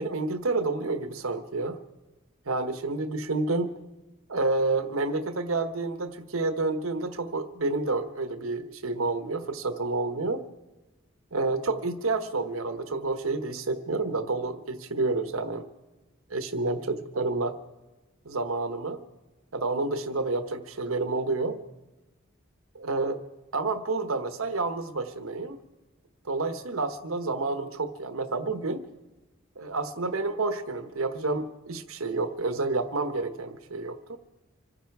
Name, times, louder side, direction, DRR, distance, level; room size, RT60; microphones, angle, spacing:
voice 1, 0.0-1.8 2.5-3.7 4.3-10.4 11.3-15.6 16.3-17.5 18.2-19.0 19.5-21.6 22.7-23.2 23.5-25.6 26.3-28.9 29.6-34.2, right 3 dB, 90° right, 9 dB, 1.2 m, -29 dB
26.5 x 10.0 x 4.7 m, 1.1 s
head